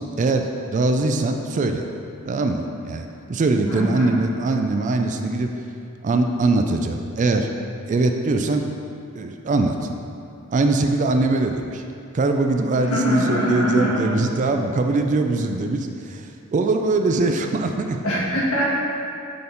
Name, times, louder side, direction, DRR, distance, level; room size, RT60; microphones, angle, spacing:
voice 1, 0.2-1.9 2.3-5.5 6.0-7.5 7.9-8.6 9.1-9.9 10.5-11.8 12.1-18.0, right 2 dB, 35° right, 5 dB, 0.3 m, -22 dB
voice 2, 3.6-4.1 12.8-14.1 18.0-18.7, equal, 85° left, -6 dB, 1.4 m, -22 dB
6.7 x 3.5 x 3.9 m, 2.5 s
head